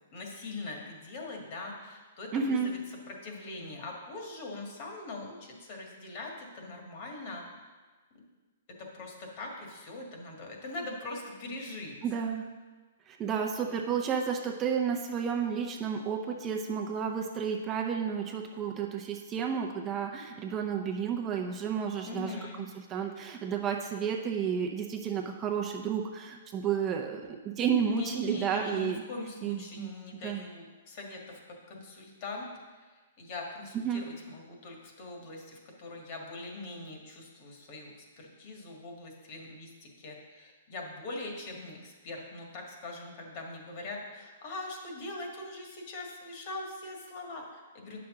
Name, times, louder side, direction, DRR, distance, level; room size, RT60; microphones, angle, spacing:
voice 1, 0.1-2.8 3.1-7.4 8.1-8.2 8.7-12.0 22.0-22.6 27.9-32.5 32.8-48.0, left 2 dB, 45° left, 0 dB, 1.7 m, -42 dB
voice 2, 2.3-2.7 12.0-12.5 13.1-29.0 29.4-29.9 30.2-30.4 33.7-34.0, right 7 dB, 25° right, 2 dB, 0.7 m, -31 dB
8.5 x 5.9 x 3.8 m, 1.3 s
hypercardioid pair, 135°, 0 cm